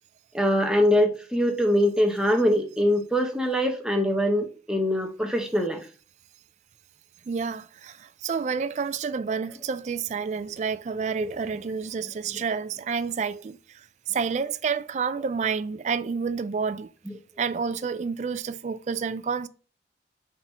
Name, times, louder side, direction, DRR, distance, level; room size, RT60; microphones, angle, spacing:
voice 1, 0.3-5.8 11.2-11.3, equal, 5° right, 0.8 m, -23 dB
voice 2, 7.3-13.6 14.1-16.9 17.4-19.5, right 5 dB, 40° right, 0.3 m, -29 dB
4.4 x 4.0 x 5.4 m
head